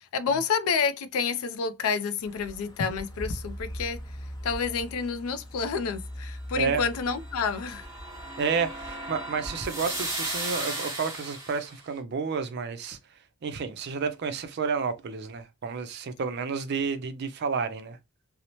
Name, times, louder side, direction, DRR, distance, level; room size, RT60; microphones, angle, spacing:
voice 1, 0.0-7.9, left 5 dB, 75° left, 0.4 m, -29 dB
sound 1, 2.2-10.6, equal, 20° left, 0.6 m, -41 dB
sound 2, 7.1-11.7, right 1 dB, 15° right, 0.9 m, -36 dB
voice 2, 8.4-13.0 13.4-18.0, right 5 dB, 50° right, 0.4 m, -30 dB
2.8 x 2.0 x 2.8 m
head